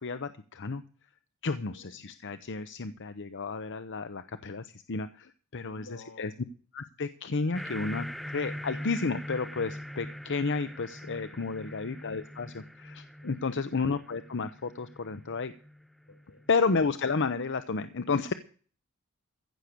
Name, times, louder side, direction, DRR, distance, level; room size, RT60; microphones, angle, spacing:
voice 1, 0.0-0.8 1.4-5.9 6.2-6.3 6.7-15.5 16.5-18.3, left 4 dB, 55° left, 11 dB, 0.8 m, -32 dB
voice 2, 1.5-2.0 5.7-6.3 11.4-11.8 13.2-13.6 16.1-16.5, left 2 dB, 85° left, 6 dB, 4.7 m, -53 dB
sound 1, 7.5-16.5, left 1 dB, ahead, 0.5 m, -42 dB
15.5 x 6.6 x 8.4 m, 0.41 s
head